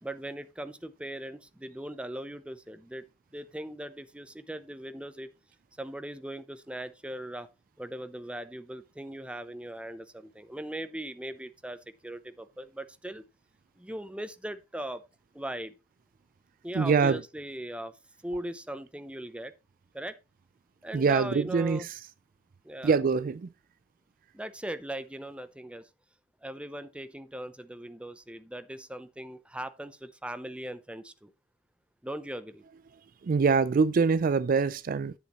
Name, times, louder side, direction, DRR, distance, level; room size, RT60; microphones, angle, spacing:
voice 1, 0.0-3.0 3.3-5.3 5.8-7.5 7.8-13.2 13.8-15.0 15.3-15.7 16.6-17.9 18.2-19.5 19.9-20.2 20.8-21.9 22.6-23.0 24.3-25.9 26.4-31.3 32.0-32.6, right 1 dB, 5° right, 0.6 m, -39 dB
voice 2, 16.7-17.2 20.9-22.0 22.8-23.5 33.2-35.1, right 5 dB, 45° right, 0.4 m, -24 dB
10.0 x 8.2 x 3.0 m
head